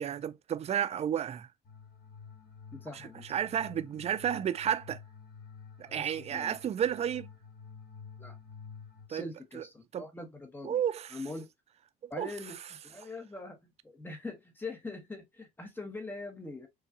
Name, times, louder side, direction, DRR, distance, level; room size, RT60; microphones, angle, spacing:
voice 1, 0.0-1.5 2.9-5.0 5.8-7.3 9.1-9.2 9.5-9.6 9.9-10.1 10.6-11.2 12.0-12.3, right 9 dB, 40° right, 0.4 m, -32 dB
sound 1, 1.6-9.1, left 6 dB, 60° left, 1.4 m, -50 dB
voice 2, 2.7-3.3 5.9-6.6 8.2-8.4 9.1-10.8 11.1-11.5 12.1-12.6 12.8-16.7, left 2 dB, 10° left, 1.0 m, -42 dB
4.7 x 2.3 x 2.6 m
cardioid pair, 110°, 17 cm